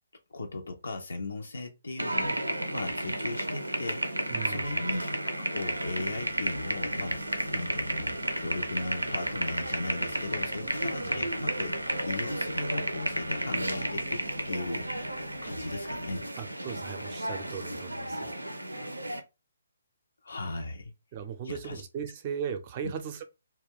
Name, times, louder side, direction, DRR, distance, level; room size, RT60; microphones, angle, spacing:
voice 1, 0.3-7.2 7.5-11.7 12.0-16.3 20.2-20.9 21.4-21.8 22.8-22.9, left 2 dB, 70° left, 0.5 m, -37 dB
sound 1, 2.0-19.2, right 1 dB, 90° right, 0.5 m, -32 dB
voice 2, 4.3-4.8 11.0-11.3 16.4-18.3 21.1-23.2, right 7 dB, 35° right, 0.5 m, -37 dB
sound 2, 5.7-16.0, left 3 dB, 85° left, 1.0 m, -53 dB
2.3 x 2.1 x 3.5 m
figure-of-eight pair, 135°, 0 cm